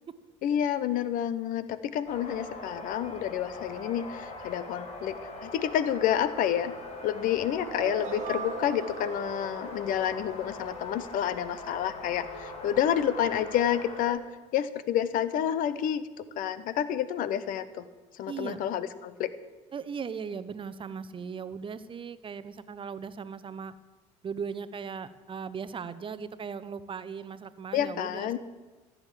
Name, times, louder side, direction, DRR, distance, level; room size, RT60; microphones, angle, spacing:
voice 1, 0.4-6.7 7.0-14.2 14.5-16.0 16.4-17.8 18.2-19.3 27.7-28.4, left 10 dB, 60° left, 15 dB, 0.9 m, -29 dB
sound 1, 2.1-14.1, left 2 dB, 40° left, 2.9 m, -42 dB
sound 2, 7.6-11.6, right 8 dB, 50° right, 1.2 m, -40 dB
voice 2, 18.3-18.6 19.7-23.7 24.2-28.4, right 6 dB, 35° right, 14 dB, 0.8 m, -38 dB
14.5 x 7.5 x 7.5 m, 1.3 s
supercardioid pair, 80°, 16 cm